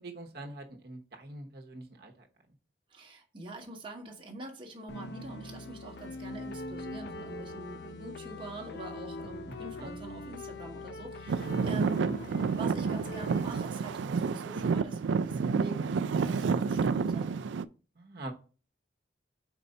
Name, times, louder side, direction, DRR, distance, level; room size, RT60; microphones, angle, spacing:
voice 1, 0.0-2.3 9.5-9.9 18.0-18.3, right 2 dB, 60° right, 1.0 m, -44 dB
voice 2, 2.9-17.3, right 2 dB, 30° right, 1.0 m, -44 dB
sound 1, 4.9-13.6, left 2 dB, 60° left, 0.6 m, -42 dB
Traffic noise roadway noise / Engine, 11.3-17.6, right 5 dB, 80° right, 0.3 m, -29 dB
4.5 x 4.0 x 5.3 m
head